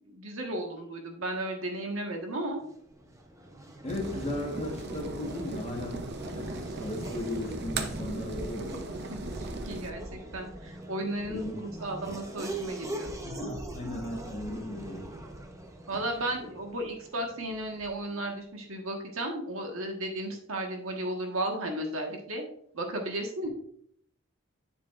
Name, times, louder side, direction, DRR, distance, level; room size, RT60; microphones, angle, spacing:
voice 1, 0.0-2.6 9.1-13.1 15.9-22.4 22.7-23.5, right 1 dB, 80° right, 2 dB, 1.5 m, -34 dB
Race car auto racing / Accelerating revving vroom, 2.5-18.2, right 1 dB, 15° right, 0.7 m, -42 dB
voice 2, 3.8-8.9 11.3-11.6 13.2-15.1, left 1 dB, 30° left, 1 dB, 1.3 m, -36 dB
sound 1, 3.9-9.9, right 3 dB, 50° right, 0.6 m, -38 dB
7.6 x 7.1 x 2.5 m, 0.64 s
head